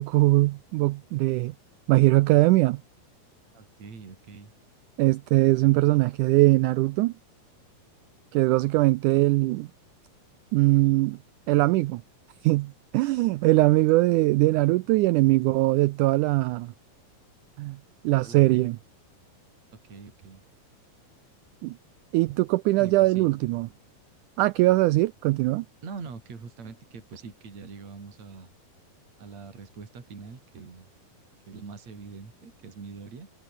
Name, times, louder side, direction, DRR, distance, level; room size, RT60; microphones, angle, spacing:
voice 1, 0.0-1.5 1.9-2.8 5.0-7.1 8.3-9.7 10.5-11.2 11.5-12.0 12.4-16.7 17.6-17.8 18.0-18.8 21.6-21.8 22.1-23.7 24.4-25.6, right 19 dB, 90° right, 1.7 m, -21 dB
voice 2, 3.5-4.5 18.2-18.7 19.8-20.4 22.7-23.3 25.8-28.5 29.2-30.9 31.5-33.3, right 5 dB, 50° right, 5.6 m, -43 dB
omnidirectional pair, 4.2 m